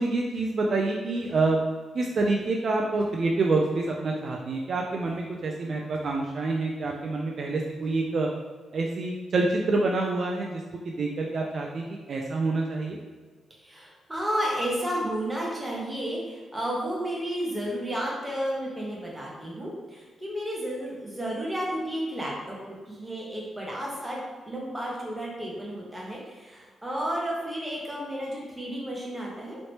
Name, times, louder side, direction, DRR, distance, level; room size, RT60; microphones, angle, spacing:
voice 1, 0.0-1.6 1.9-8.3 8.7-13.0, right 3 dB, 50° right, 0 dB, 0.3 m, -27 dB
voice 2, 13.6-24.2 24.5-29.6, equal, 10° right, -4 dB, 0.9 m, -32 dB
3.1 x 2.8 x 2.9 m, 1.4 s
cardioid pair, 115°, 0 cm